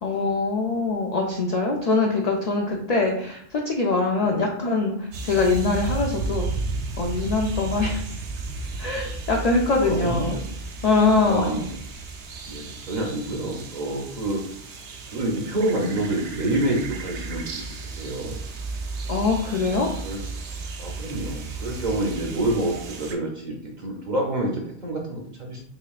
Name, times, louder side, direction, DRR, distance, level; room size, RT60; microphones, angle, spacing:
voice 1, 0.0-6.5 7.0-8.0 8.8-10.4 10.8-11.6 19.1-19.9, left 3 dB, 70° left, 0 dB, 0.3 m, -23 dB
sound 1, 5.1-23.1, right 3 dB, 75° right, 0.9 m, -34 dB
voice 2, 9.8-10.4 11.2-11.7 12.5-14.4 15.1-18.4 19.7-19.8 20.0-20.2 20.8-25.6, right 1 dB, 45° right, 0 dB, 0.7 m, -28 dB
3.8 x 3.1 x 2.4 m, 0.64 s
omnidirectional pair, 1.2 m